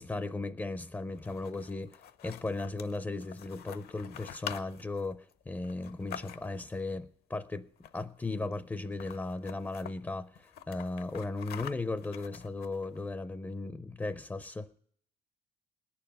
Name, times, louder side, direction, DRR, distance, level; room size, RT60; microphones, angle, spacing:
voice 1, 0.0-14.7, left 2 dB, 10° left, 0.4 m, -36 dB
sound 1, 1.1-6.7 7.8-8.2 8.5-8.6 8.9-9.9 10.4-13.0, left 10 dB, 70° left, 0.7 m, -46 dB
19.5 x 6.9 x 5.2 m
cardioid pair, 110°, 17 cm